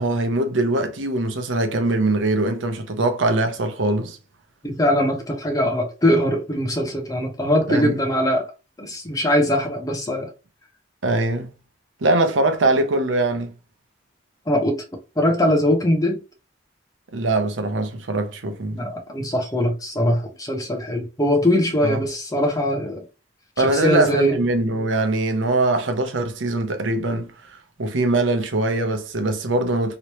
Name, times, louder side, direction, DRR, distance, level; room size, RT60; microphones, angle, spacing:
voice 1, 0.0-4.2 7.7-8.0 11.0-11.5 12.0-13.5 17.1-18.9 21.8-22.0 23.6-30.0, right 2 dB, 90° right, 0.7 m, -22 dB
voice 2, 4.6-8.5 8.8-10.3 14.5-14.8 15.2-16.2 18.7-23.0 23.6-24.4, equal, 20° left, 0.7 m, -21 dB
3.0 x 3.0 x 2.9 m
head